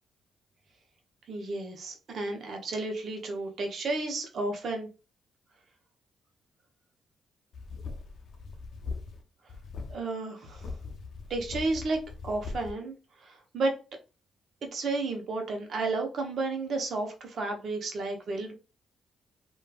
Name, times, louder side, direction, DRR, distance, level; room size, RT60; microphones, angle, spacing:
voice 1, 1.3-4.9 9.9-10.7 11.3-12.0 12.2-12.9 13.2-13.7 14.6-18.5, right 3 dB, 65° right, 3 dB, 0.7 m, -32 dB
sound 1, 7.5-9.2 9.5-9.9 10.5-12.7, left 4 dB, 70° left, 0.5 m, -40 dB
3.1 x 2.2 x 2.3 m, 0.33 s
supercardioid pair, 60°, 0 cm